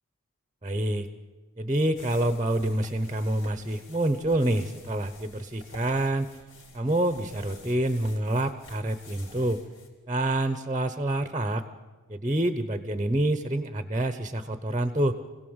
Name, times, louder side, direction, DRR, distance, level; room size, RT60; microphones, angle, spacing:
voice 1, 0.6-1.1 1.6-6.3 6.7-9.6 10.1-11.6 12.1-15.1, right 1 dB, 20° right, 11 dB, 0.8 m, -27 dB
sound 1, 2.0-9.9, left 3 dB, 75° left, 4.2 m, -50 dB
26.0 x 17.0 x 8.0 m, 1.3 s
head